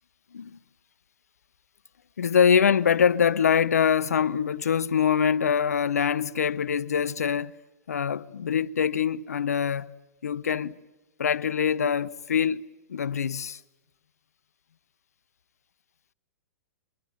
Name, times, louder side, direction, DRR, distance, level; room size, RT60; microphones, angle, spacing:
voice 1, 2.2-7.5 7.9-9.9 10.2-10.8 11.2-12.6 12.9-13.6, left 7 dB, 80° left, 0.8 m, -24 dB
25.0 x 22.5 x 9.0 m
hypercardioid pair, 115°, 8 cm